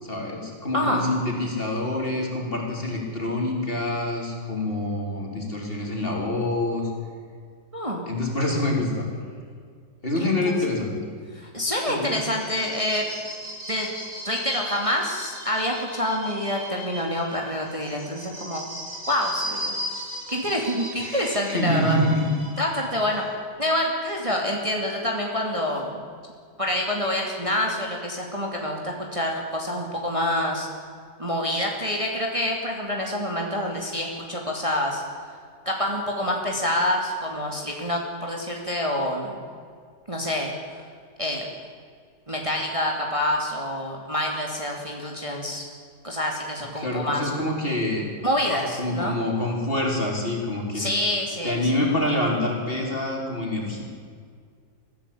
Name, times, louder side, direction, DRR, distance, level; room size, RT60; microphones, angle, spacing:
voice 1, 0.0-6.9 8.1-9.0 10.0-10.9 11.9-12.1 21.0-22.3 46.8-48.0 48.5-50.9 51.4-53.8, left 1 dB, 30° left, 0 dB, 4.3 m, -26 dB
voice 2, 0.7-1.0 7.7-8.0 11.3-13.0 13.7-13.9 14.2-18.6 19.1-22.0 22.6-23.2 23.6-26.0 26.6-30.7 31.2-35.0 35.6-39.4 40.1-40.5 41.2-41.5 42.3-45.6 46.0-47.3 48.2-49.2 50.7-51.9, left 1 dB, 20° right, 0 dB, 2.8 m, -27 dB
sound 1, 12.2-23.3, equal, 85° right, 7.7 m, -37 dB
23.0 x 15.5 x 8.7 m, 2.1 s
omnidirectional pair, 1.8 m